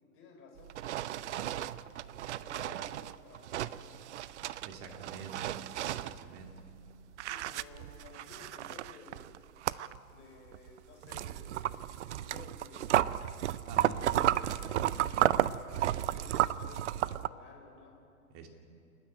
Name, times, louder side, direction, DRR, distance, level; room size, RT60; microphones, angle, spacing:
voice 1, 0.1-1.7 2.3-4.0 7.3-9.3 10.1-13.1 13.8-17.9, left 4 dB, 25° left, 1 dB, 4.7 m, -54 dB
sound 1, 0.6-6.9 7.1-10.1 10.5-17.3, right 12 dB, 50° right, 0.6 m, -33 dB
voice 2, 4.6-5.5 5.9-6.5 13.7-14.0 18.3-18.5, right 5 dB, 30° right, 4 dB, 2.5 m, -46 dB
29.0 x 9.8 x 9.4 m, 2.5 s
hypercardioid pair, 125°, 45 cm